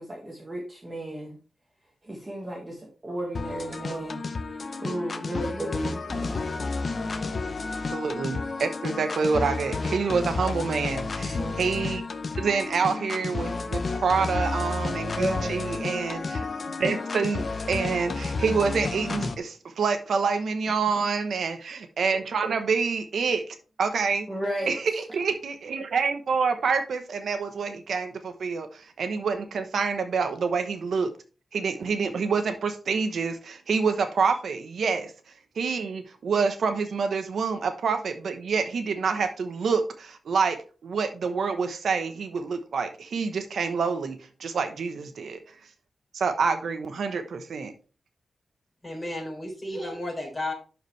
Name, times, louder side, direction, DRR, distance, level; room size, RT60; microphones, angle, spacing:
voice 1, 0.0-1.4 2.0-4.2 4.8-6.5 11.2-11.5 15.1-15.6 24.3-24.7, right 1 dB, 20° right, 0 dB, 1.6 m, -34 dB
sound 1, 3.3-19.3, left 3 dB, 45° left, 0.8 m, -31 dB
voice 2, 7.9-12.0 12.4-16.4 16.8-24.3 24.7-31.1 31.5-35.1 35.6-45.4 46.1-47.7, right 5 dB, 80° right, 7 dB, 1.0 m, -27 dB
voice 3, 48.8-50.5, left 1 dB, 10° left, -2 dB, 4.2 m, -33 dB
11.5 x 4.9 x 3.2 m, 0.36 s
wide cardioid pair, 140°, 0 cm